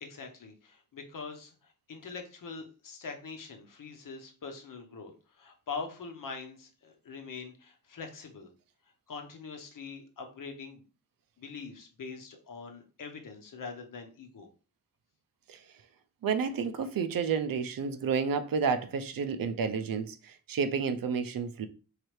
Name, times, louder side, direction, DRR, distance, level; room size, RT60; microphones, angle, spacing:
voice 1, 0.0-1.5 1.9-8.5 9.1-10.8 11.4-14.5, left 4 dB, 70° left, 1.0 m, -43 dB
voice 2, 16.2-21.7, right 6 dB, 85° right, 0.6 m, -30 dB
4.7 x 3.3 x 3.1 m
wide cardioid pair, 145°, 34 cm